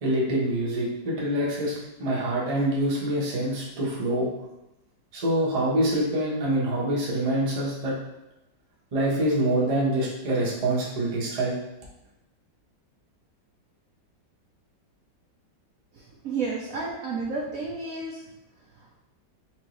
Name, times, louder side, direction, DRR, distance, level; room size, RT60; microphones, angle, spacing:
voice 1, 0.0-4.3 5.1-8.0 8.9-11.5, right 1 dB, 30° right, -5 dB, 0.7 m, -25 dB
voice 2, 15.9-18.2 18.8-19.0, right 4 dB, 70° right, -2 dB, 0.8 m, -32 dB
4.4 x 2.8 x 3.0 m, 0.91 s
omnidirectional pair, 1.9 m